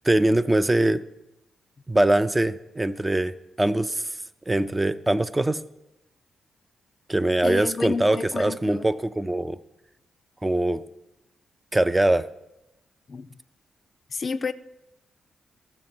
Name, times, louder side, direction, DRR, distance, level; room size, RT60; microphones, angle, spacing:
voice 1, 0.0-1.0 1.9-3.3 3.6-4.1 4.5-5.6 7.1-9.6 10.4-10.8 11.7-12.3, right 1 dB, 15° right, 0.4 m, -22 dB
voice 2, 7.4-8.9 13.1-13.3 14.1-14.5, left 4 dB, 50° left, 0.4 m, -31 dB
13.5 x 6.4 x 4.4 m
cardioid pair, 65°, 0 cm